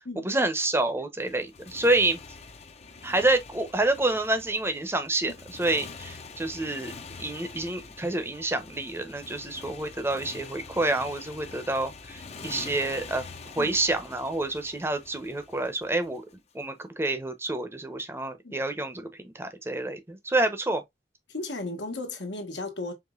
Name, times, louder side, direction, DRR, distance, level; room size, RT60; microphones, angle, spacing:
voice 1, 0.2-2.2 3.0-5.3 5.6-6.9 7.2-13.3 13.5-16.2 16.5-20.8, right 2 dB, 15° right, 0.7 m, -28 dB
Motorcycle, 1.2-16.4, left 4 dB, 35° left, 0.6 m, -45 dB
voice 2, 21.3-22.9, left 2 dB, 85° left, 1.4 m, -35 dB
4.9 x 3.1 x 2.4 m
head